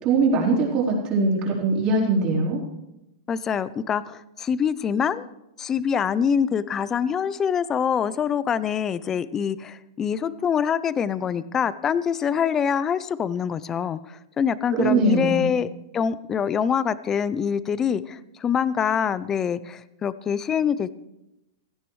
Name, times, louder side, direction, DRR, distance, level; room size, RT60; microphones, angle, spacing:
voice 1, 0.0-2.6 14.7-15.5, right 3 dB, 35° right, -3 dB, 3.9 m, -21 dB
voice 2, 3.3-5.3 5.6-15.7 15.9-20.9, left 7 dB, 20° left, 17 dB, 0.5 m, -25 dB
16.5 x 14.5 x 3.2 m, 0.91 s
supercardioid pair, 150°, 2 cm